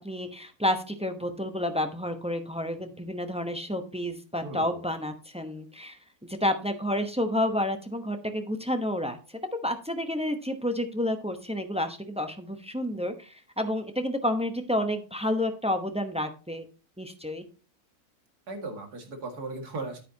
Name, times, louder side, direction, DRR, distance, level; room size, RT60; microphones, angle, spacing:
voice 1, 0.0-9.2 9.6-16.6 17.0-17.4, left 1 dB, 5° right, 6 dB, 0.6 m, -30 dB
voice 2, 4.4-4.8 18.5-20.0, right 2 dB, 90° right, 4 dB, 2.5 m, -37 dB
10.0 x 9.0 x 2.8 m, 0.35 s
omnidirectional pair, 1.6 m